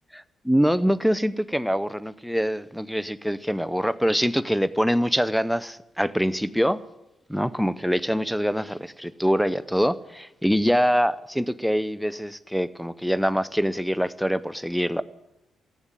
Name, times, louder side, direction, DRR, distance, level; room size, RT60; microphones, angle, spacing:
voice 1, 0.1-6.8 7.3-15.0, equal, ahead, 0.7 m, -24 dB
14.5 x 9.0 x 9.0 m
supercardioid pair, 55°, 0 cm